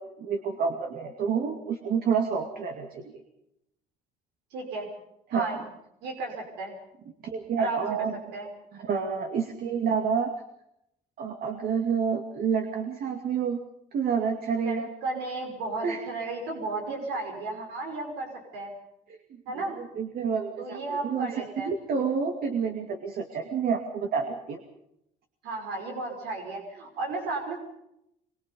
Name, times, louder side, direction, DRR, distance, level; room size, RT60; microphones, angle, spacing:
voice 1, 0.0-3.2 5.3-5.5 7.2-8.1 8.7-10.3 11.2-13.6 13.9-14.9 15.8-16.0 16.9-17.0 19.6-24.6, right 6 dB, 60° right, 5 dB, 2.4 m, -29 dB
voice 2, 4.5-4.9 5.3-5.6 6.0-6.8 7.6-8.1 8.3-8.5 14.6-18.7 19.5-19.8 20.6-21.7 25.4-27.6, right 3 dB, 85° right, 2 dB, 5.6 m, -34 dB
23.5 x 23.0 x 5.4 m, 0.80 s
cardioid pair, 110°, 17 cm